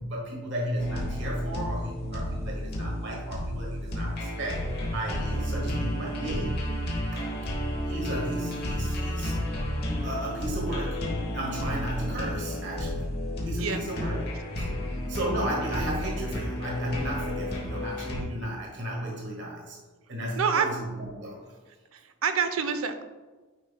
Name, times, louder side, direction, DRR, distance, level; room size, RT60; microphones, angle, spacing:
voice 1, 0.0-6.5 6.9-7.4 7.8-9.4 10.0-11.0 11.3-13.1 13.4-14.7 15.1-19.8 20.1-21.4, right 1 dB, 55° right, -2 dB, 1.5 m, -34 dB
sound 1, 0.8-18.2, equal, 45° left, 1.1 m, -32 dB
voice 2, 20.4-20.7 21.9-23.0, right 6 dB, 85° right, 9 dB, 0.6 m, -27 dB
8.9 x 5.2 x 2.2 m, 1.3 s
head